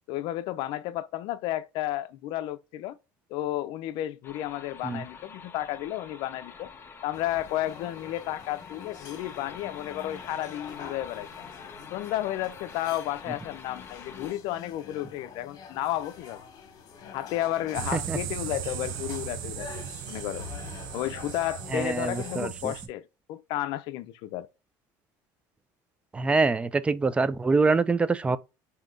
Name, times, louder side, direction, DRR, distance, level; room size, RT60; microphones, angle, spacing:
voice 1, 0.1-3.0 3.3-6.7 7.0-11.4 11.9-16.4 17.1-19.7 20.1-20.5 20.9-24.5, left 14 dB, 70° left, 0.5 m, -32 dB
sound 1, 4.2-14.3, left 6 dB, 25° left, 0.6 m, -46 dB
sound 2, 7.1-22.4, left 6 dB, 50° left, 1.1 m, -46 dB
sound 3, 17.7-22.9, right 10 dB, 80° right, 0.5 m, -37 dB
voice 2, 21.7-22.7 26.1-28.4, right 3 dB, 15° right, 0.3 m, -25 dB
3.7 x 2.8 x 3.6 m
cardioid pair, 115°, 8 cm